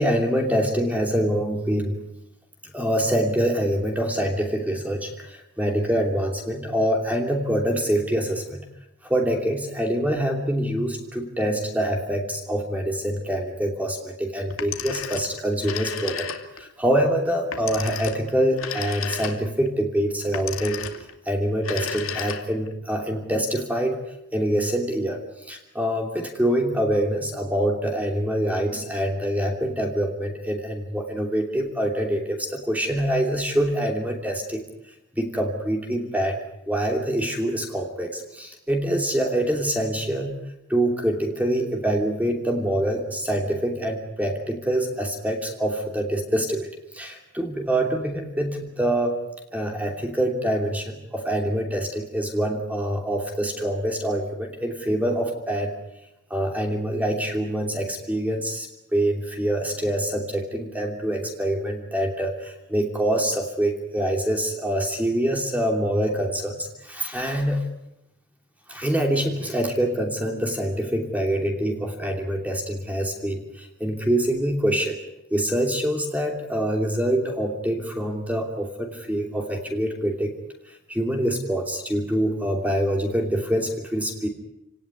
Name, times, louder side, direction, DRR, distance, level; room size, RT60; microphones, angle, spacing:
voice 1, 0.0-2.0 2.6-8.6 9.0-16.3 16.5-20.8 21.2-24.0 24.3-25.2 25.5-34.6 35.1-40.4 40.7-46.7 46.9-49.2 49.5-55.7 56.3-58.7 58.9-67.6 68.7-75.0 75.3-80.3 80.7-84.3, right 1 dB, 5° right, 2 dB, 2.9 m, -25 dB
Telephone, 14.5-16.7 17.5-19.7 20.3-21.1 21.6-22.7, left 6 dB, 75° left, 2.4 m, -33 dB
28.5 x 18.0 x 9.7 m, 0.90 s
head